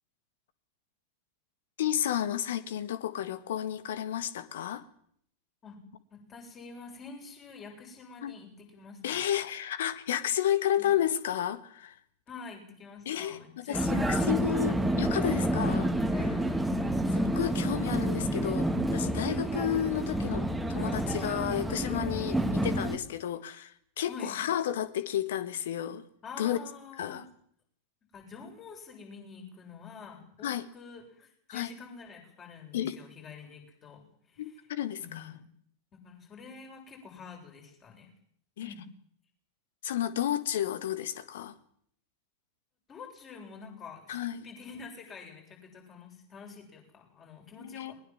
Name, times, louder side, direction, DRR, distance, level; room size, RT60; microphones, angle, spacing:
voice 1, 1.8-4.8 8.2-8.3 9.0-11.9 13.0-16.4 17.3-26.0 26.4-26.6 27.0-27.3 30.4-30.7 31.5-31.7 32.7-33.0 34.4-35.3 38.6-38.7 39.8-41.5 44.1-44.4 47.6-47.9, left 11 dB, 60° left, 14 dB, 1.6 m, -32 dB
voice 2, 6.1-9.2 10.8-10.9 12.3-14.3 24.1-24.4 26.2-27.3 28.1-34.6 35.0-35.4 35.9-38.1 38.6-38.8 42.9-47.9, left 5 dB, 25° left, 2 dB, 7.9 m, -47 dB
Vehicle, 13.7-23.0, right 1 dB, 5° right, 2.2 m, -29 dB
21.0 x 20.5 x 7.8 m, 0.66 s
figure-of-eight pair, 90°, 0 cm